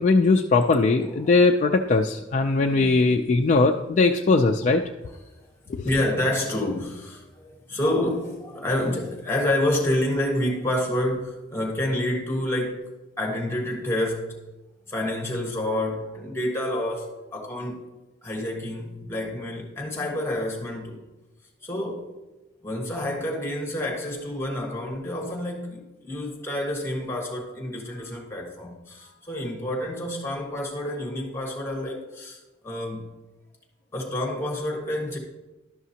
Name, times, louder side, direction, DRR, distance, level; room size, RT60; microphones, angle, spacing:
voice 1, 0.0-4.8 5.7-5.8, left 3 dB, 40° left, 0.3 m, -20 dB
voice 2, 5.8-12.8 13.2-14.4 14.9-17.9 18.2-21.0 21.6-22.1 22.6-33.0 33.9-35.2, left 1 dB, 15° left, 1.4 m, -28 dB
11.5 x 5.9 x 2.8 m
head